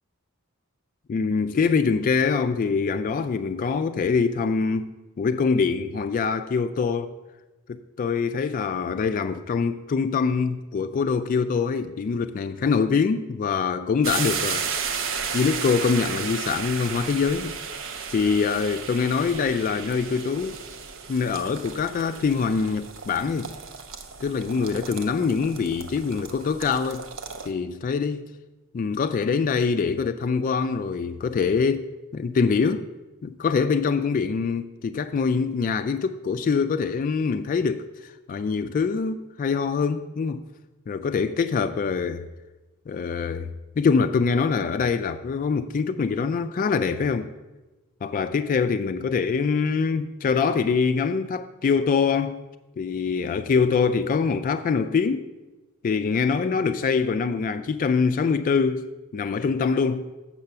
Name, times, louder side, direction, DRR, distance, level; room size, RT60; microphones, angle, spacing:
voice 1, 1.1-7.1 7.7-14.7 15.3-17.6 18.1-20.6 21.1-23.6 24.2-27.1 27.5-28.3 28.7-32.9 33.2-37.9 38.3-40.4 40.9-42.3 42.9-47.3 48.0-52.4 52.8-55.3 55.8-60.1, left 5 dB, 40° left, 0.3 m, -24 dB
sound 1, 14.0-27.5, right 6 dB, 65° right, 0.7 m, -34 dB
7.5 x 5.8 x 6.6 m
head